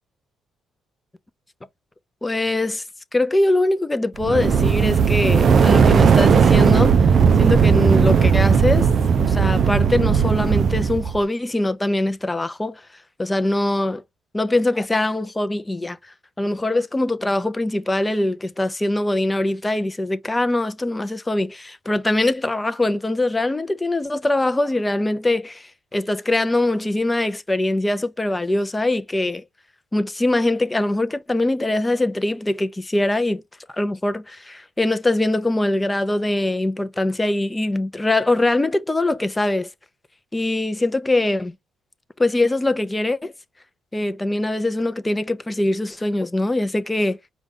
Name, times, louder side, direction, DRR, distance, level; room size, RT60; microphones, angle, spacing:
voice 1, 2.2-2.8 3.1-7.1 7.4-8.9 9.2-12.8 13.2-14.0 14.3-29.4 29.9-33.4 33.7-39.7 40.3-41.5 42.2-43.3 43.9-47.2, left 2 dB, 15° left, 0.6 m, -22 dB
sound 1, 4.2-11.2, right 6 dB, 50° right, 0.4 m, -16 dB
5.0 x 2.4 x 3.7 m
cardioid pair, 100°, 0 cm